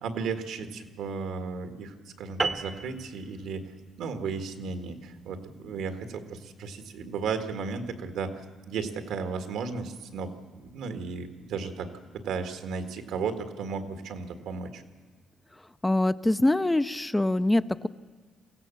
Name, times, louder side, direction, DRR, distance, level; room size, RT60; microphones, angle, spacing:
voice 1, 0.0-3.7 4.0-8.4 8.7-10.3 10.6-11.9 12.1-14.8, right 5 dB, 85° right, 7 dB, 1.9 m, -34 dB
sound 1, 2.4-7.1, right 3 dB, 30° right, 0.9 m, -36 dB
voice 2, 15.8-17.9, left 1 dB, 10° left, 12 dB, 0.6 m, -24 dB
23.5 x 16.0 x 7.1 m, 1.4 s
cardioid pair, 90°, 0 cm